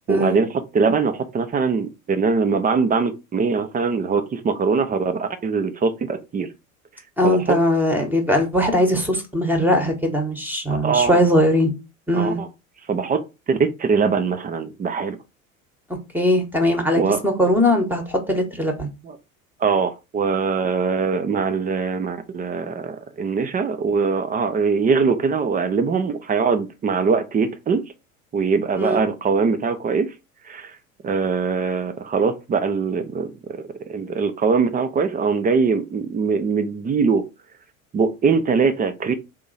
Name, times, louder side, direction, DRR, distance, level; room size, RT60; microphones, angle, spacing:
voice 1, 0.1-0.5 0.7-6.5 7.2-7.6 10.7-11.2 12.1-12.5 12.9-13.2 13.5-15.2 17.0-17.2 19.0-19.2 19.6-27.8 28.3-30.1 30.5-30.7 31.0-37.3 37.9-39.1, right 5 dB, 20° right, 0.6 m, -22 dB
voice 2, 7.2-11.7 12.1-12.4 16.1-18.9 28.7-29.0, left 1 dB, 5° right, 1.1 m, -20 dB
3.8 x 2.8 x 4.0 m
hypercardioid pair, 80°, 42 cm